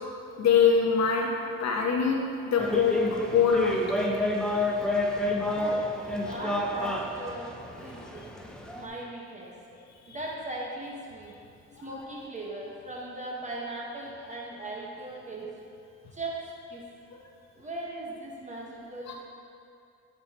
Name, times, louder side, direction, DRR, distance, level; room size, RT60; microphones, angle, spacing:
voice 1, 0.4-1.3 1.6-2.2 2.5-3.8 6.2-6.3, left 6 dB, 60° left, 0 dB, 1.0 m, -23 dB
sound 1, 2.6-8.9, left 1 dB, 5° left, 0.5 m, -30 dB
voice 2, 5.5-5.9 6.2-8.5 8.7-9.6 10.1-11.3 11.8-15.5 16.1-16.9 17.6-19.2, right 2 dB, 25° right, -3 dB, 1.3 m, -38 dB
8.0 x 5.1 x 2.9 m, 2.5 s
cardioid pair, 90°, 30 cm